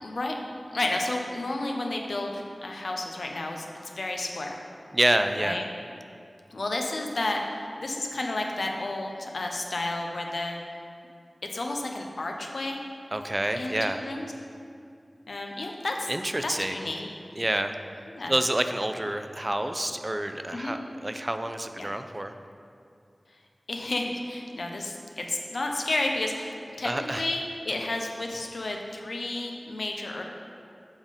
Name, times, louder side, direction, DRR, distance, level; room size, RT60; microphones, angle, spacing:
voice 1, 0.0-0.3 0.7-4.6 5.4-5.6 6.5-10.6 11.5-12.8 13.6-14.3 15.3-16.1 16.4-17.1 18.1-18.3 20.5-20.7 21.7-21.9 23.7-26.9 27.2-30.2, left 2 dB, 80° left, 2 dB, 0.6 m, -31 dB
voice 2, 4.9-5.6 13.1-14.0 16.1-16.8 17.4-17.8 18.3-22.3 26.8-27.3, right 1 dB, 25° right, 7 dB, 0.3 m, -28 dB
7.2 x 3.7 x 5.1 m, 2.4 s
wide cardioid pair, 55°, 0 cm